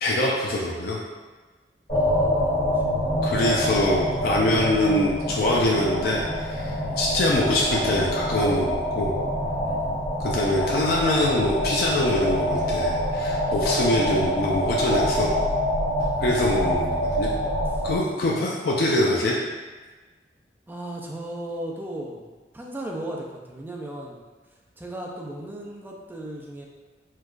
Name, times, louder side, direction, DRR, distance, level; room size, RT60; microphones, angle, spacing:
voice 1, 0.0-1.0 3.2-9.1 10.2-15.3 16.2-17.3 17.8-19.3, left 1 dB, 55° left, -3 dB, 0.4 m, -24 dB
sound 1, 1.9-18.0, equal, 35° left, 1.4 m, -25 dB
voice 2, 1.9-3.4 6.9-7.0 9.7-9.9 16.0-16.4 17.7-17.8 18.1-18.4 20.7-22.3 22.5-24.2 24.8-26.7, right 1 dB, 10° right, -1 dB, 0.4 m, -37 dB
4.5 x 2.3 x 2.4 m, 1.3 s
head